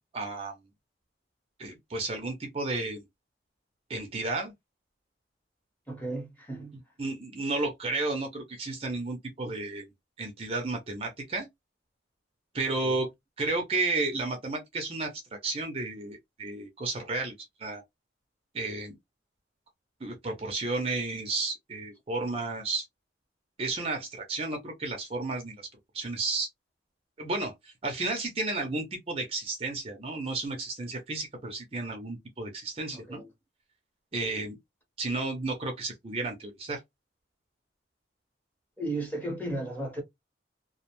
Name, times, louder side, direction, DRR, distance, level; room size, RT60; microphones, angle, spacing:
voice 1, 0.1-0.5 1.6-3.0 3.9-4.5 7.0-9.8 10.2-11.5 12.5-13.1 13.4-17.8 18.5-19.0 20.0-22.9 23.6-25.6 25.9-26.5 27.2-33.2 34.1-34.6 35.0-36.8, right 3 dB, 30° right, 0.5 m, -32 dB
voice 2, 5.9-6.8 12.7-13.1 32.9-33.3 38.8-40.0, right 1 dB, 10° left, 0.8 m, -35 dB
2.4 x 2.1 x 2.9 m
head